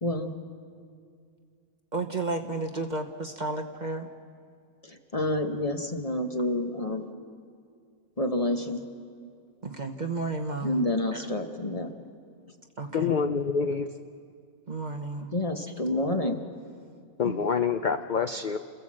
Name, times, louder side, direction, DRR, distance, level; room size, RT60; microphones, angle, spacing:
voice 1, 0.0-0.3 4.8-7.1 8.2-8.8 10.6-11.9 15.3-16.4, left 1 dB, 25° left, 5 dB, 1.1 m, -28 dB
voice 2, 1.9-4.1 9.6-10.8 12.8-13.1 14.7-15.3 17.2-17.4, right 3 dB, 35° right, 3 dB, 1.0 m, -32 dB
voice 3, 12.9-13.9 17.2-18.6, left 6 dB, 50° left, 7 dB, 0.5 m, -26 dB
29.5 x 16.0 x 7.6 m, 2.3 s
omnidirectional pair, 1.6 m